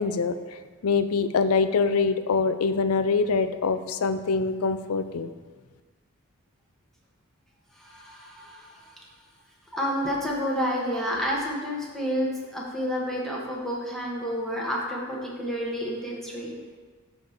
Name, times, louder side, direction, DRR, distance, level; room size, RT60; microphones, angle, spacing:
voice 1, 0.0-5.3, left 4 dB, 80° left, 11 dB, 0.4 m, -24 dB
voice 2, 7.8-8.9 9.7-16.6, equal, ahead, -4 dB, 1.1 m, -30 dB
12.0 x 4.1 x 3.6 m, 1.4 s
head